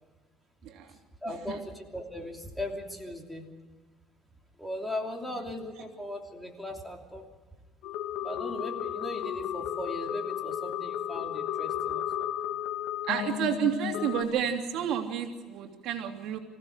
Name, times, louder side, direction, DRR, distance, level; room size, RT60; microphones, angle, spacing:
voice 1, 1.2-3.5 4.6-7.2 8.2-12.3, left 1 dB, 5° left, 2 dB, 3.0 m, -38 dB
sound 1, 7.8-14.2, left 11 dB, 85° left, 1.9 m, -33 dB
voice 2, 13.1-16.4, right 9 dB, 65° right, 3 dB, 3.1 m, -30 dB
26.0 x 16.0 x 6.6 m, 1.3 s
cardioid pair, 135°, 0 cm